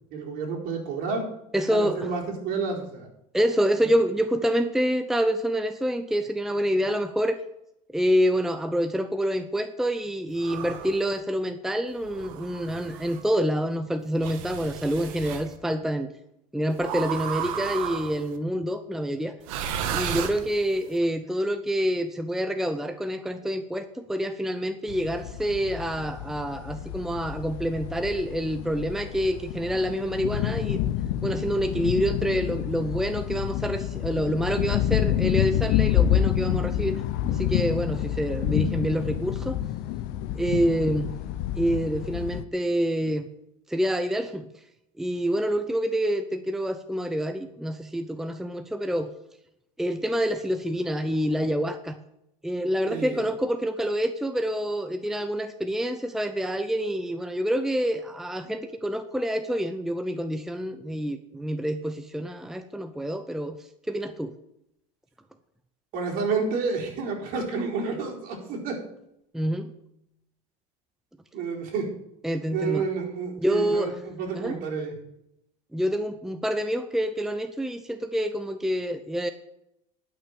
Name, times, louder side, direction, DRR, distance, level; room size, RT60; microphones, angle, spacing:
voice 1, 0.1-1.3 1.7-3.1 52.9-53.2 65.9-68.8 71.3-71.9 72.5-74.9, right 5 dB, 55° right, -1 dB, 4.4 m, -30 dB
voice 2, 1.5-2.1 3.3-7.4 7.9-16.1 16.5-19.4 19.9-30.8 31.2-37.0 37.3-39.6 40.3-41.1 41.6-43.3 43.7-44.5 45.0-49.1 49.8-52.0 52.4-64.3 69.3-69.7 72.2-72.8 73.4-74.0 74.3-74.6 75.7-79.3, equal, ahead, 9 dB, 0.7 m, -27 dB
sound 1, 10.4-11.1 12.0-13.2 14.2-15.5 16.8-18.3 19.4-20.8, right 8 dB, 80° right, 1.6 m, -33 dB
sound 2, 24.9-42.4, left 11 dB, 65° left, 0.7 m, -28 dB
11.5 x 6.2 x 8.9 m, 0.81 s
supercardioid pair, 120°, 17 cm